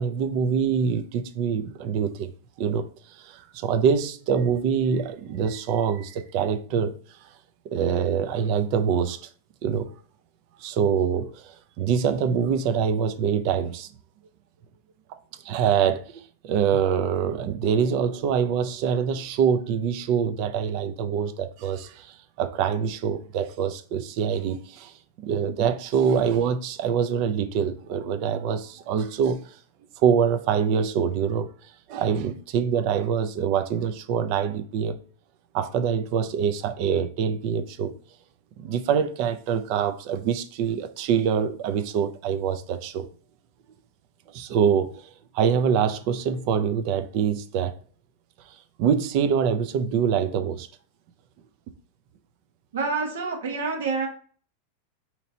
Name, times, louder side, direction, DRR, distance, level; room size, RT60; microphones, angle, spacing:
voice 1, 0.0-2.3 2.6-6.9 7.7-9.2 9.6-9.9 10.6-13.9 15.4-29.6 30.0-31.5 31.9-35.0 35.5-37.9 38.6-43.1 44.3-47.7 48.8-50.7, right 7 dB, 50° right, 0.5 m, -25 dB
voice 2, 52.7-54.1, right 4 dB, 85° right, 1.2 m, -27 dB
4.1 x 2.9 x 2.7 m
supercardioid pair, 135°, 0 cm